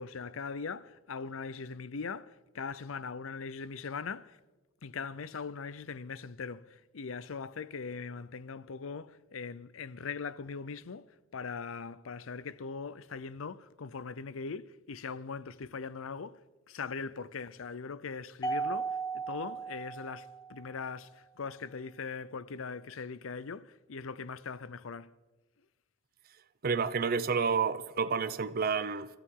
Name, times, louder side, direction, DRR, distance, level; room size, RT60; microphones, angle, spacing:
voice 1, 0.0-4.4 4.8-11.1 11.3-16.4 16.7-25.1, left 5 dB, 85° left, 0.6 m, -40 dB
Mallet percussion, 18.4-20.9, right 4 dB, 20° left, 0.5 m, -36 dB
voice 2, 26.6-29.1, right 5 dB, 45° right, 0.6 m, -29 dB
28.0 x 13.0 x 3.8 m
head